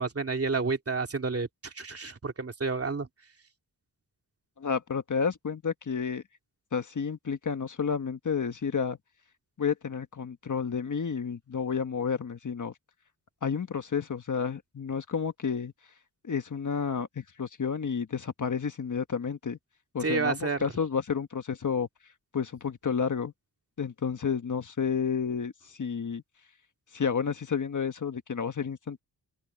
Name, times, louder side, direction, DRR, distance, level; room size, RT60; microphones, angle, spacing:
voice 1, 0.0-3.1 20.0-20.6, right 4 dB, 35° right, 2.5 m, -30 dB
voice 2, 4.6-6.2 6.7-9.0 9.6-12.7 13.4-15.7 16.2-19.6 19.9-21.9 22.3-23.3 23.8-26.2 26.9-29.0, left 6 dB, 50° left, 1.4 m, -31 dB
wide cardioid pair, 120°, 40 cm